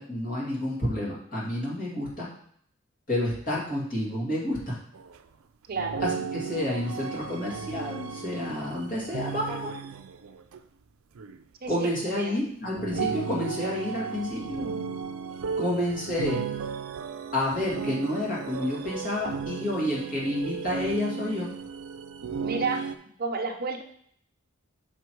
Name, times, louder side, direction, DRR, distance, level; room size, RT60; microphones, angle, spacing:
voice 1, 0.0-2.3 3.1-4.8 6.0-9.7 11.7-14.8 15.6-16.5 17.3-21.5, left 1 dB, 40° left, -5 dB, 2.3 m, -30 dB
sound 1, 4.9-5.2 5.7-10.6 11.1-11.4 12.0-12.1 12.7-22.9, right 6 dB, 90° right, 0.5 m, -35 dB
voice 2, 5.7-6.0 11.6-11.9 12.2-12.3 22.4-22.8 23.2-23.8, right 4 dB, 45° right, 4 dB, 0.7 m, -30 dB
6.0 x 4.7 x 4.6 m, 0.64 s
head